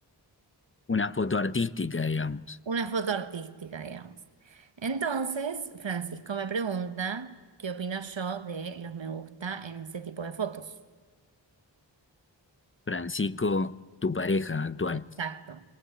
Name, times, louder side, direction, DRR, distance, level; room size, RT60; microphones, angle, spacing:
voice 1, 0.9-2.6 12.9-13.7 14.0-15.1, left 3 dB, 30° left, 0.6 m, -28 dB
voice 2, 2.7-4.2 4.4-7.3 7.6-10.7 15.2-15.6, right 5 dB, 80° right, 1.2 m, -33 dB
24.0 x 19.5 x 8.8 m
wide cardioid pair, 70°, 45 cm